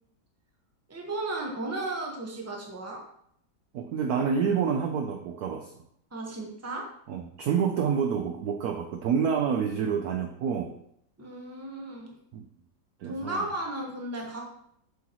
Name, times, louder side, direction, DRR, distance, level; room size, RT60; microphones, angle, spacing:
voice 1, 0.9-3.0 6.1-6.8 11.2-12.2 13.0-14.5, right 2 dB, 10° right, 0 dB, 0.9 m, -34 dB
voice 2, 3.7-5.7 7.1-10.7 12.3-12.4 13.0-13.4, right 7 dB, 70° right, 5 dB, 0.9 m, -28 dB
7.8 x 5.6 x 3.0 m, 0.71 s
omnidirectional pair, 2.1 m